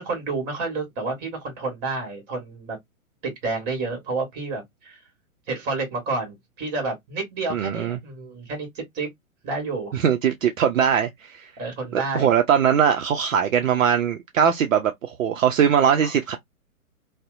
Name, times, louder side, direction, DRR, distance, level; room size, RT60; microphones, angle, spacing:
voice 1, 0.0-2.8 3.2-5.0 5.5-9.1 9.4-9.9 11.6-12.3 15.8-16.1, right 3 dB, 25° right, 1.3 m, -30 dB
voice 2, 7.5-8.0 9.9-11.4 11.9-16.4, right 8 dB, 65° right, 0.5 m, -21 dB
2.6 x 2.0 x 2.3 m
figure-of-eight pair, 120°, 42 cm